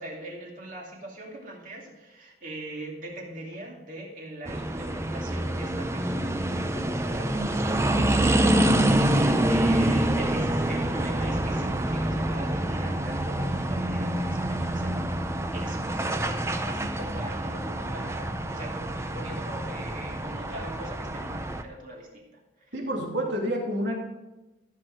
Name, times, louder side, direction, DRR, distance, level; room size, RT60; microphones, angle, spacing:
voice 1, 0.0-9.2 9.5-22.7, right 1 dB, 45° right, -1 dB, 2.5 m, -42 dB
sound 1, 4.5-21.6, right 1 dB, 15° right, 0.6 m, -26 dB
voice 2, 22.7-24.0, equal, 85° right, -1 dB, 2.7 m, -28 dB
14.0 x 6.4 x 4.9 m, 1.0 s
head